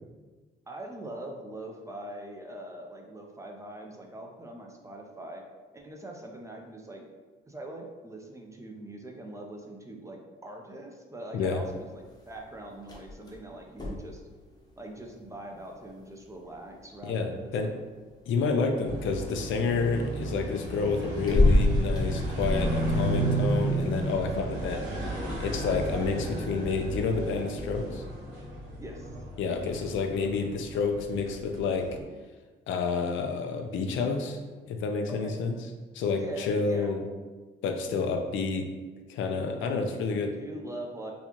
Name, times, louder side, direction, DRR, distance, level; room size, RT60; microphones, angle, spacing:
voice 1, 0.7-5.4 5.7-7.1 7.5-14.2 14.8-17.8 24.3-24.8 28.8-29.2 29.7-30.0 35.1-35.4 36.2-36.9 39.6-39.7 40.1-41.1, right 1 dB, 15° right, 1 dB, 0.5 m, -42 dB
sound 1, 11.4-28.1, left 1 dB, 20° left, 0.8 m, -33 dB
voice 2, 17.0-17.7 18.3-24.8 25.2-28.0 29.4-31.9 32.7-34.4 34.7-35.6 35.9-37.0 37.6-38.7 39.1-40.3, left 4 dB, 75° left, 5 dB, 0.5 m, -29 dB
sound 2, 18.8-32.0, right 2 dB, 80° right, 1.5 m, -33 dB
4.0 x 2.3 x 3.0 m, 1.3 s
cardioid pair, 90°, 20 cm